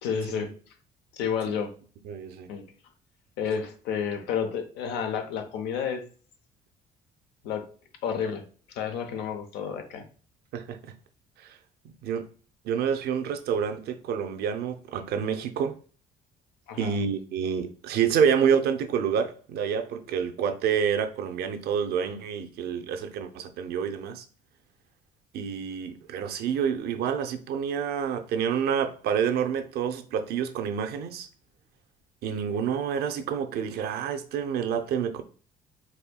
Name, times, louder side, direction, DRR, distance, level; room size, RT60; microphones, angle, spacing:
voice 1, 0.0-0.5 1.1-1.7 2.5-2.6 3.4-6.0 7.4-7.7 8.0-8.4 8.8-10.0 16.7-16.9, left 7 dB, 90° left, 0.6 m, -30 dB
voice 2, 2.1-2.5 10.5-10.9 12.0-12.2 12.6-15.8 16.8-24.2 25.3-31.3 32.2-35.2, right 7 dB, 70° right, 0.5 m, -28 dB
4.2 x 2.7 x 2.2 m
cardioid pair, 110°, 17 cm